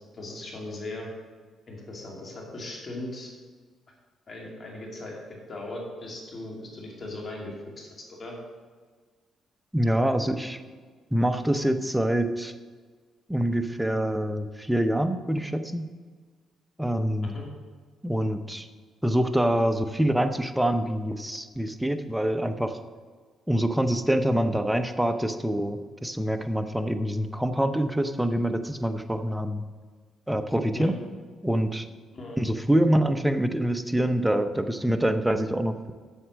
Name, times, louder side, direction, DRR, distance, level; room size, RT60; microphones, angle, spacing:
voice 1, 0.1-1.1 1.7-3.3 4.3-8.4 17.2-17.4 30.8-30.9 32.1-32.4, left 2 dB, 40° left, -1 dB, 2.5 m, -38 dB
voice 2, 9.7-10.6 11.1-12.5 13.3-15.9 16.8-17.4 18.0-18.7 19.0-22.8 23.5-29.6 30.3-31.0 31.4-31.9 32.4-35.9, right 1 dB, 5° right, 8 dB, 0.7 m, -25 dB
8.0 x 7.2 x 6.3 m, 1.5 s
cardioid pair, 90°, 0 cm